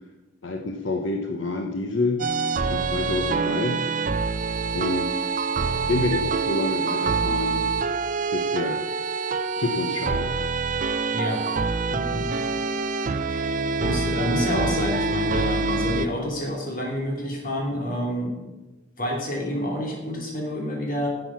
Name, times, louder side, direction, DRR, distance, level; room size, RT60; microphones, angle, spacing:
voice 1, 0.4-2.2 2.7-3.8 4.7-5.2 5.9-7.7 8.3-8.8 9.6-10.3, left 2 dB, 80° left, 4 dB, 0.9 m, -27 dB
sound 1, 2.2-16.1, right 4 dB, 40° right, 0.5 m, -26 dB
voice 2, 11.1-11.6 11.9-12.2 13.3-18.4 19.0-21.1, left 1 dB, 45° left, 0 dB, 3.0 m, -28 dB
10.5 x 7.7 x 5.9 m, 1.1 s
head